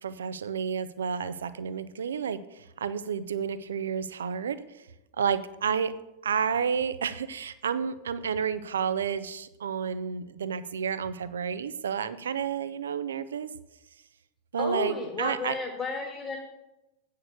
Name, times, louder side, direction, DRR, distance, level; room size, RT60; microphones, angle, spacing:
voice 1, 0.0-4.9 5.2-5.9 6.2-13.5 14.5-15.5, right 7 dB, 65° right, 14 dB, 0.6 m, -30 dB
voice 2, 14.6-16.4, left 3 dB, 15° left, 0 dB, 1.7 m, -33 dB
8.7 x 6.6 x 8.1 m, 0.93 s
figure-of-eight pair, 90°, 0 cm